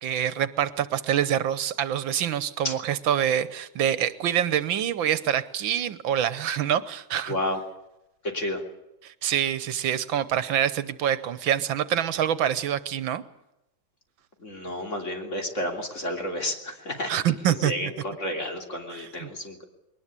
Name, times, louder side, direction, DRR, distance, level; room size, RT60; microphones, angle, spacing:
voice 1, 0.0-7.3 9.0-13.2 17.1-17.9 19.2-19.3, right 10 dB, 80° right, 15 dB, 1.7 m, -26 dB
voice 2, 7.3-7.6 8.2-8.6 14.4-17.1 17.4-19.7, left 1 dB, 35° left, 3 dB, 3.4 m, -31 dB
21.5 x 19.5 x 8.4 m, 0.91 s
omnidirectional pair, 2.1 m